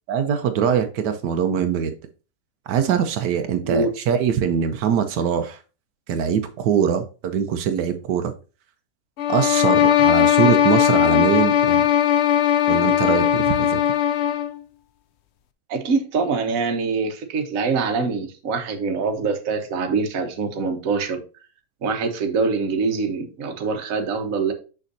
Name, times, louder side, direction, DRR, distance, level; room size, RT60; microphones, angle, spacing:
voice 1, 0.1-1.9 2.7-5.6 6.1-8.3 9.3-11.9 12.7-13.8, right 8 dB, 80° right, 1.3 m, -22 dB
sound 1, 9.2-14.6, left 11 dB, 70° left, 0.6 m, -18 dB
voice 2, 15.7-21.2 21.8-24.5, right 4 dB, 55° right, 1.4 m, -24 dB
6.5 x 6.3 x 2.7 m
omnidirectional pair, 1.8 m